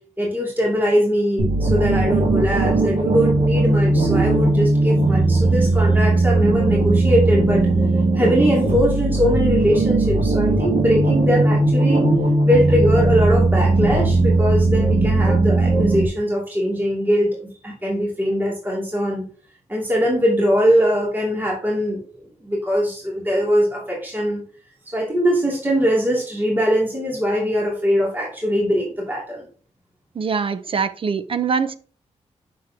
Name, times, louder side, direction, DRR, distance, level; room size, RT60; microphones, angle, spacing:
voice 1, 0.2-7.6 8.1-12.0 12.4-19.3 19.7-22.0 22.4-24.4 24.9-29.5, equal, 15° right, 2.6 m, -21 dB
sound 1, 1.4-16.0, right 2 dB, 65° right, 2.6 m, -18 dB
voice 2, 30.1-31.8, right 5 dB, 45° right, 0.7 m, -23 dB
7.5 x 6.5 x 2.9 m
cardioid pair, 90°, 12 cm